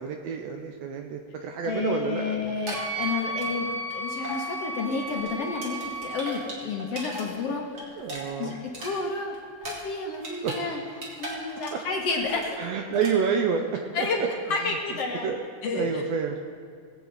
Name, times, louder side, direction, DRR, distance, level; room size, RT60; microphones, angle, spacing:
voice 1, 0.0-2.4 8.0-8.6 10.4-10.5 11.7-11.8 12.6-13.7 14.0-14.1 14.6-14.8 15.2-15.5 15.7-16.5, right 6 dB, 75° right, 4 dB, 1.6 m, -28 dB
voice 2, 1.6-8.0 8.4-10.8 11.2-12.6 13.9-14.2 14.5-15.3 15.6-16.0, left 4 dB, 60° left, 1 dB, 2.0 m, -31 dB
sound 1, 2.5-3.9 4.2-4.4 4.8-7.2 7.6-10.6 10.9-11.9 12.1-12.5 12.9-13.1, equal, 35° right, 2.5 m, -38 dB
Wind instrument woodwind instrument, 2.7-6.4, right 2 dB, 50° right, 1.0 m, -34 dB
19.5 x 8.1 x 4.0 m, 2.2 s
omnidirectional pair, 3.5 m